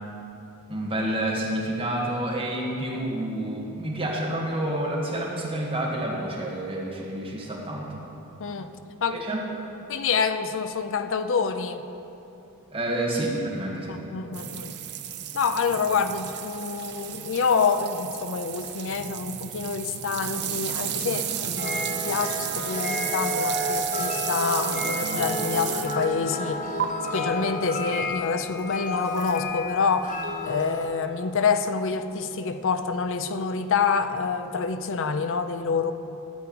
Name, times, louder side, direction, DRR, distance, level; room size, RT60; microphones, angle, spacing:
voice 1, 0.7-8.0 9.1-9.4 12.7-14.0, right 1 dB, 25° right, -3 dB, 1.7 m, -29 dB
voice 2, 8.4-8.7 9.0-9.2 9.9-11.8 13.9-14.7 15.3-26.7 27.1-30.1 30.5-35.9, left 5 dB, 60° left, 9 dB, 0.6 m, -27 dB
sound 1, 14.3-26.1 26.8-26.9 29.1-29.4, right 10 dB, 50° right, 0.6 m, -33 dB
sound 2, 21.6-30.9, left 2 dB, 35° left, 1.2 m, -31 dB
13.5 x 4.7 x 8.6 m, 2.9 s
head